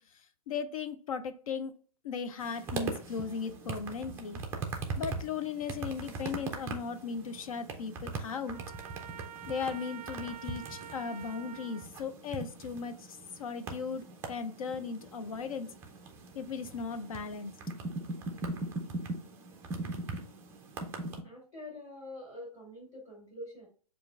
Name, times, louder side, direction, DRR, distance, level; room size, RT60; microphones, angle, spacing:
voice 1, 0.5-1.8 2.0-4.4 5.0-8.6 9.5-15.7 16.3-17.5, left 5 dB, 60° left, 10 dB, 0.5 m, -37 dB
sound 1, 2.4-21.2, right 3 dB, 10° right, 0.4 m, -41 dB
Trumpet, 8.5-11.9, right 9 dB, 75° right, 0.4 m, -47 dB
voice 2, 21.2-23.7, left 1 dB, 20° left, -4 dB, 1.8 m, -45 dB
6.7 x 2.4 x 2.4 m, 0.41 s
hypercardioid pair, 140°, 20 cm